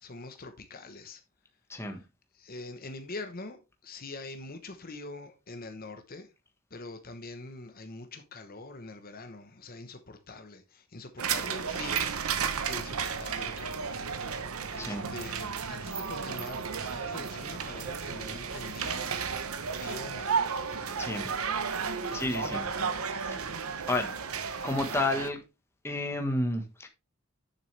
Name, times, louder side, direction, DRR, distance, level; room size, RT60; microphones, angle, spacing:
voice 1, 0.0-1.2 2.4-6.3 6.7-12.0 12.7-14.0 14.5-19.1 19.7-20.4 22.1-23.1, left 2 dB, 45° left, 1.1 m, -44 dB
sound 1, 11.2-25.3, right 6 dB, 85° right, 1.0 m, -33 dB
voice 2, 14.8-15.1 21.0-21.3 22.1-22.6 23.1-23.4 23.9-24.1 24.6-25.4 25.8-26.9, left 2 dB, 10° left, 1.3 m, -31 dB
9.6 x 7.1 x 3.3 m
head